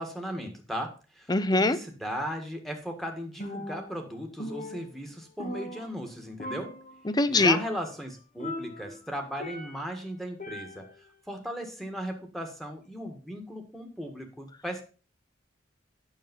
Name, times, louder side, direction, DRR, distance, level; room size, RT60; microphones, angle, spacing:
voice 1, 0.0-6.7 7.3-10.9 11.3-14.8, equal, ahead, 3 dB, 1.8 m, -37 dB
voice 2, 1.3-1.8 7.1-7.6, left 2 dB, 20° left, 14 dB, 0.6 m, -22 dB
Percussion, 3.4-4.1 4.4-6.1 6.4-7.1 7.4-7.9 8.4-10.0 10.4-11.1, left 1 dB, 40° left, 1.3 m, -40 dB
9.0 x 6.7 x 5.3 m, 0.35 s
head